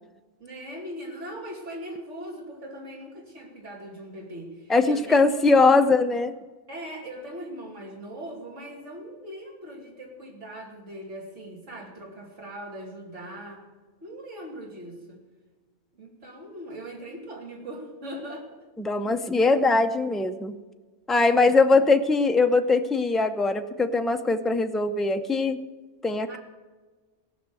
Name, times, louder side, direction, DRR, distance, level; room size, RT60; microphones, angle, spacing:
voice 1, 0.4-5.9 6.7-13.6 14.0-15.2 15.9-18.6 21.3-21.8 26.3-26.4, right 1 dB, 80° right, 0 dB, 3.0 m, -40 dB
voice 2, 4.7-6.3 18.8-20.6 21.1-25.6 26.0-26.4, left 3 dB, ahead, 6 dB, 0.3 m, -21 dB
18.0 x 6.1 x 7.6 m, 1.3 s
omnidirectional pair, 1.2 m